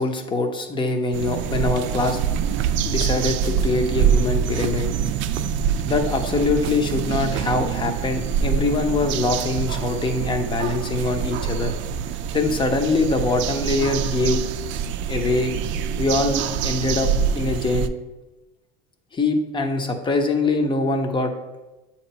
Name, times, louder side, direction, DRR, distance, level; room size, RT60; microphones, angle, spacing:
voice 1, 0.0-2.2 2.8-4.9 5.9-11.7 12.3-14.4 15.1-15.5 16.0-17.1 17.4-17.9 19.1-21.3, left 3 dB, 25° left, 5 dB, 0.8 m, -23 dB
sound 1, 1.1-17.9, right 8 dB, 65° right, 0.4 m, -25 dB
7.8 x 3.0 x 5.5 m, 1.1 s
cardioid pair, 130°, 20 cm